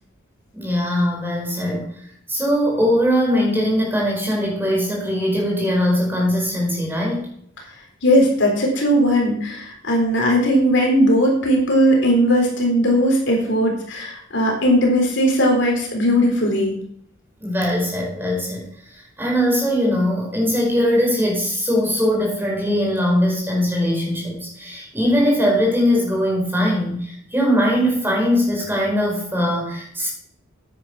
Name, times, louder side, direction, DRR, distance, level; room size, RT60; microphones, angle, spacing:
voice 1, 0.5-1.9 2.3-7.2 17.4-18.7 19.2-30.1, equal, 10° right, -3 dB, 4.9 m, -20 dB
voice 2, 8.0-16.8, equal, 65° left, 0 dB, 3.9 m, -18 dB
9.9 x 9.4 x 5.8 m, 0.67 s
head